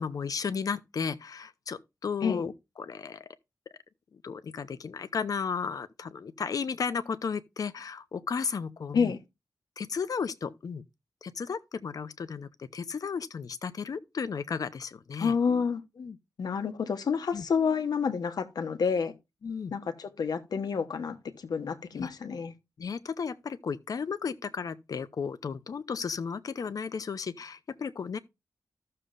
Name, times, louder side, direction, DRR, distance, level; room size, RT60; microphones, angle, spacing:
voice 1, 0.0-2.5 2.8-3.3 4.2-9.1 9.8-10.8 11.2-15.3 16.0-16.2 17.3-17.4 19.4-19.7 22.0-22.1 22.8-28.2, left 6 dB, 65° left, 0.7 m, -34 dB
voice 2, 15.2-15.8 16.4-19.1 19.7-22.5, left 6 dB, 85° left, 1.0 m, -29 dB
14.5 x 6.7 x 2.5 m
wide cardioid pair, 95°, 7 cm